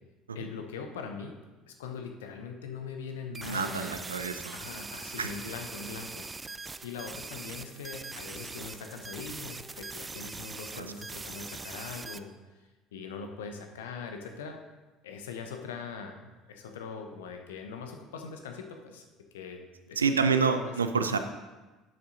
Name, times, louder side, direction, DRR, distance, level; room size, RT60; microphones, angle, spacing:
voice 1, 0.3-1.3 1.7-4.1 4.5-14.6 15.0-19.1 19.3-19.6 19.9-20.7, left 5 dB, 70° left, 4 dB, 0.9 m, -42 dB
sound 1, 3.3-12.2, right 3 dB, 20° right, 0.4 m, -42 dB
voice 2, 3.3-4.5 5.2-5.3 10.7-10.9 20.0-21.2, right 5 dB, 80° right, 8 dB, 0.4 m, -28 dB
11.5 x 7.6 x 2.7 m, 1.2 s
figure-of-eight pair, 60°, 0 cm